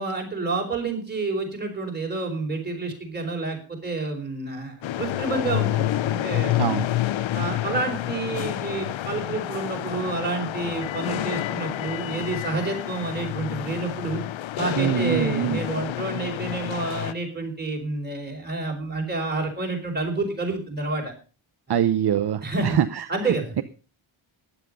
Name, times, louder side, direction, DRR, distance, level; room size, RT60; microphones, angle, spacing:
voice 1, 0.0-6.8 7.3-14.2 14.5-21.1 21.7-21.8 22.4-22.8 23.1-23.5, right 3 dB, 20° right, 1 dB, 4.7 m, -29 dB
sound 1, 4.8-17.1, left 14 dB, 65° left, 0.7 m, -29 dB
voice 2, 14.8-15.6 21.7-23.1, right 10 dB, 50° right, 10 dB, 0.8 m, -23 dB
15.5 x 11.0 x 5.4 m, 0.36 s
wide cardioid pair, 175°, 50 cm